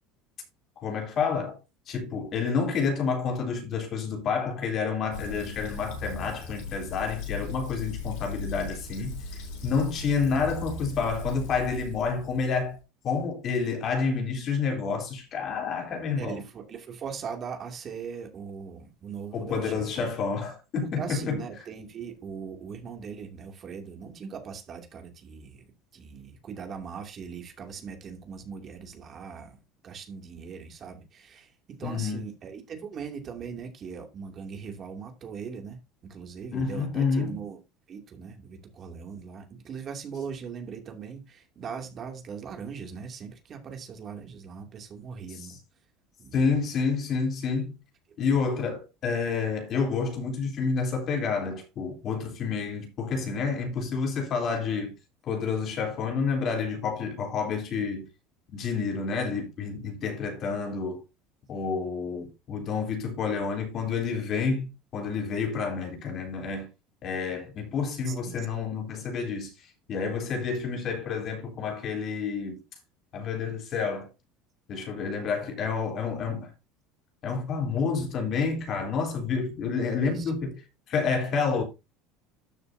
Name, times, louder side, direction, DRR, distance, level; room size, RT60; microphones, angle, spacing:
voice 1, 0.8-1.6 1.9-12.8 13.0-16.4 19.3-21.4 31.8-32.2 36.5-37.4 45.3-45.6 46.3-47.8 48.2-54.9 55.2-58.1 58.5-61.0 61.5-66.7 67.0-69.5 69.9-72.6 73.1-74.1 74.7-76.5 77.2-80.6 80.9-81.6, left 5 dB, 45° left, 3.5 m, -29 dB
Fill (with liquid), 5.1-12.8, left 4 dB, 70° left, 6.1 m, -38 dB
voice 2, 16.2-20.1 21.0-25.6 25.9-29.6 29.8-31.5 31.8-37.6 37.9-45.6 46.2-46.4 68.1-68.5 80.0-80.3, right 6 dB, 35° right, 2.6 m, -40 dB
12.5 x 6.8 x 2.7 m
supercardioid pair, 120°, 0 cm